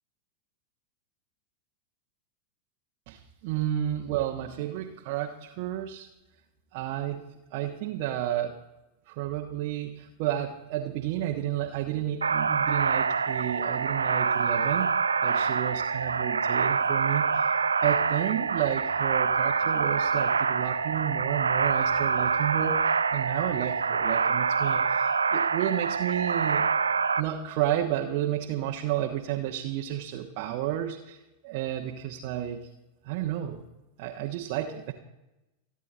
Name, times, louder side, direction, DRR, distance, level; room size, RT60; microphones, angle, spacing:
voice 1, 3.1-6.1 6.7-7.2 7.5-8.6 9.1-14.9 15.2-17.5 17.8-26.7 27.2-31.2 31.4-32.7 33.0-33.6 34.0-34.9, right 12 dB, 45° right, 1 dB, 1.3 m, -31 dB
sound 1, 12.2-27.2, right 5 dB, 75° right, 0.5 m, -26 dB
28.5 x 10.0 x 4.2 m, 0.97 s
figure-of-eight pair, 90°, 0 cm